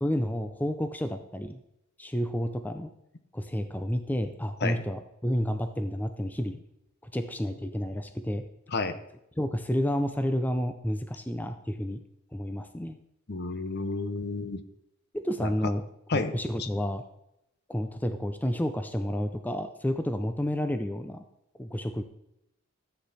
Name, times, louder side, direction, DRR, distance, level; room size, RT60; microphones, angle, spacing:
voice 1, 0.0-1.6 2.0-2.9 3.3-6.6 7.0-8.4 9.4-12.0 12.3-13.0 15.1-15.8 16.1-17.0 17.7-21.2 21.6-22.0, equal, 10° left, 8 dB, 0.6 m, -30 dB
voice 2, 13.3-14.6 15.4-15.5 16.1-16.3 16.6-16.7, left 3 dB, 50° left, 10 dB, 0.9 m, -30 dB
13.5 x 8.2 x 4.1 m, 0.81 s
head